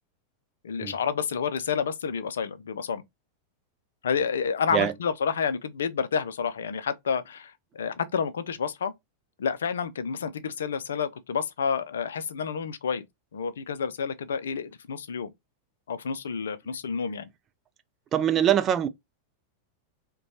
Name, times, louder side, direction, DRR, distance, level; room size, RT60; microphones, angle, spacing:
voice 1, 0.6-3.0 4.0-8.9 9.4-13.1 13.3-15.3 15.9-17.3, left 6 dB, 65° left, 0.4 m, -29 dB
voice 2, 18.1-18.9, right 10 dB, 30° right, 0.4 m, -23 dB
5.0 x 2.2 x 2.8 m
figure-of-eight pair, 90°, 0 cm